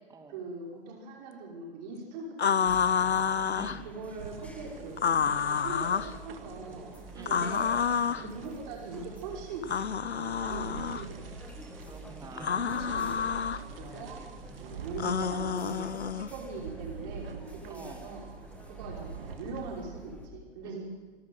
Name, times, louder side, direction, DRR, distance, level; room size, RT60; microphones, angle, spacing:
voice 1, 0.3-3.3 3.8-7.7 8.2-9.7 10.1-11.3 12.6-14.2 14.6-18.3 18.7-20.9, right 3 dB, 40° right, -2 dB, 5.5 m, -42 dB
sound 1, 2.4-3.8 5.0-6.1 7.3-8.3 9.6-11.0 12.4-13.6 15.0-16.3, left 7 dB, 80° left, 0.8 m, -29 dB
sound 2, 2.7-20.3, right 1 dB, 5° left, 1.8 m, -48 dB
voice 2, 3.5-3.8 7.1-7.5 8.0-8.3 11.8-13.1 13.8-15.2 17.7-18.0 18.9-19.1 20.6-20.9, right 3 dB, 10° right, 5 dB, 2.3 m, -49 dB
sound 3, 4.2-20.1, right 6 dB, 60° right, 2.3 m, -47 dB
26.5 x 13.0 x 7.9 m, 1.3 s
figure-of-eight pair, 115°, 32 cm